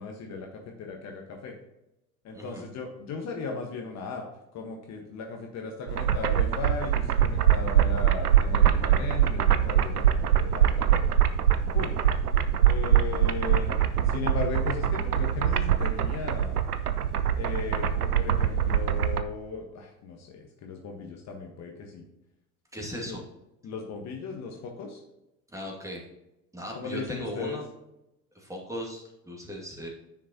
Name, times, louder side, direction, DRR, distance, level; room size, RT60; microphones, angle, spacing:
voice 1, 0.0-1.6 2.2-4.2 4.5-11.0 11.7-12.0 12.6-13.8 14.0-16.6 17.3-22.1 23.1-23.2 23.6-25.0 26.7-27.6, left 4 dB, 35° left, 2 dB, 1.3 m, -37 dB
voice 2, 2.3-2.6 22.7-23.2 25.5-26.0 26.5-27.6 28.3-29.9, equal, 5° right, -1 dB, 2.3 m, -37 dB
sound 1, 5.9-19.2, right 9 dB, 85° right, 0.6 m, -23 dB
9.6 x 6.5 x 2.9 m, 0.90 s
figure-of-eight pair, 75°, 44 cm